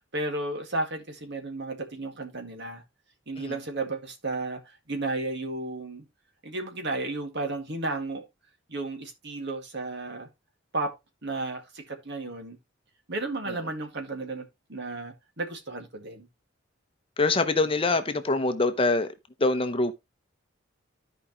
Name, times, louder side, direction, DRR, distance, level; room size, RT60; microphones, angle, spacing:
voice 1, 0.1-2.8 3.3-6.0 6.4-8.2 8.7-10.3 10.7-10.9 11.2-12.6 13.1-16.3, right 2 dB, 60° right, 1.9 m, -33 dB
voice 2, 17.2-19.1 19.4-19.9, left 3 dB, 25° left, 0.8 m, -24 dB
13.5 x 5.0 x 3.0 m
head